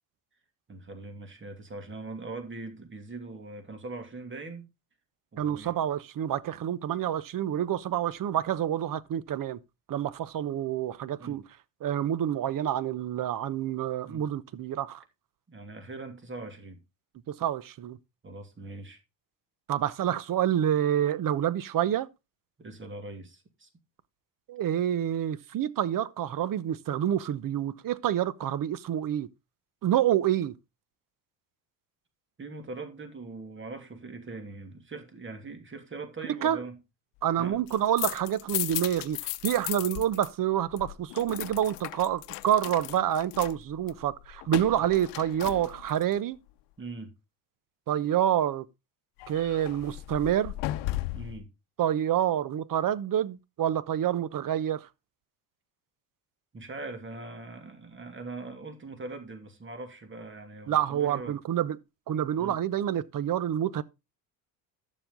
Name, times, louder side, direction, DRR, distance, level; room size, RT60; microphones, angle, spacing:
voice 1, 0.7-4.7 5.3-5.8 11.2-11.4 14.1-14.2 15.5-16.8 18.2-19.0 22.6-23.7 32.4-36.8 37.4-37.6 46.8-47.1 51.1-51.5 56.5-61.4 62.4-62.6, right 3 dB, 25° right, 2.8 m, -41 dB
voice 2, 5.4-9.6 9.9-11.4 11.8-15.0 17.3-18.0 19.7-22.1 24.5-29.3 29.8-30.6 36.4-36.6 37.2-46.4 47.9-48.7 49.3-50.5 51.8-54.9 60.7-61.8 62.1-63.8, right 10 dB, 50° right, 1.0 m, -28 dB
sound 1, 37.5-40.3 40.5-46.1 49.2-51.4, left 18 dB, 75° left, 0.8 m, -36 dB
12.0 x 7.1 x 3.8 m
supercardioid pair, 95°, 43 cm